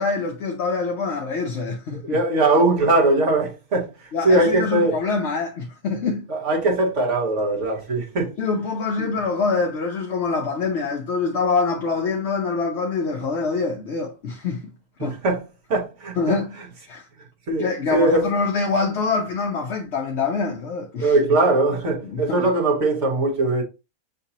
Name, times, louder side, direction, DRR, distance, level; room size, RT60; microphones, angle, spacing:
voice 1, 0.0-2.2 4.1-6.3 8.4-14.7 15.0-15.2 16.2-16.5 16.9-17.1 17.6-21.1 22.0-22.5, left 4 dB, 60° left, 0.8 m, -25 dB
voice 2, 2.0-5.0 6.3-8.3 9.0-9.1 15.0-15.4 15.7-16.4 17.5-18.3 21.0-23.6, right 2 dB, 55° right, 1.6 m, -21 dB
6.5 x 2.8 x 2.8 m
omnidirectional pair, 1.6 m